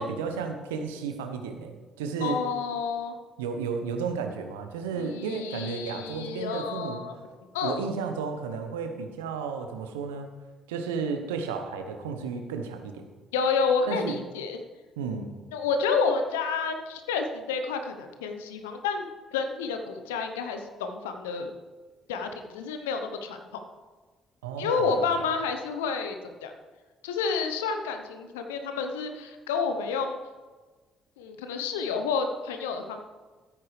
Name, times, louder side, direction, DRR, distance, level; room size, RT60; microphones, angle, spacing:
voice 1, 0.0-2.4 3.4-7.0 7.6-10.3 10.7-13.1 13.9-14.2 15.0-15.3 24.4-25.1, right 5 dB, 75° right, 6 dB, 1.0 m, -33 dB
voice 2, 2.2-3.1 4.9-7.1 7.5-7.8 13.3-14.6 15.5-21.5 22.1-23.4 24.6-26.2 26.4-26.5 27.0-30.2 31.2-33.0, left 5 dB, 75° left, 6 dB, 0.9 m, -29 dB
13.5 x 8.9 x 3.3 m, 1.3 s
figure-of-eight pair, 45°, 0 cm